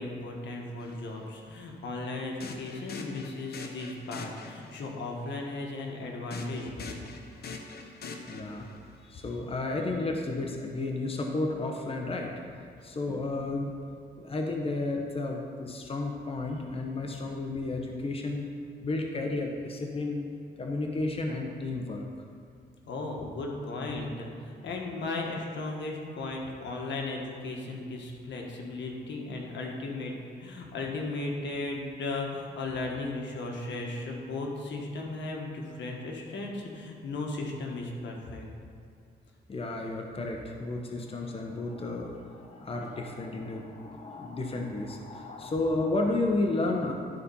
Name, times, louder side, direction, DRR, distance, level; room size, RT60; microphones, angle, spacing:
voice 1, 0.0-7.0 13.1-13.2 22.9-30.1 30.4-38.5, left 2 dB, 80° left, 0 dB, 1.4 m, -36 dB
sound 1, 0.8-1.0 2.4-4.9 6.3-8.9, left 4 dB, 60° left, 0.9 m, -43 dB
voice 2, 8.3-8.7 9.0-12.3 12.8-13.7 14.2-18.5 18.8-20.3 20.6-22.0 39.5-46.9, left 2 dB, 30° left, 1 dB, 1.0 m, -32 dB
12.5 x 4.3 x 5.5 m, 2.3 s
cardioid pair, 95°, 18 cm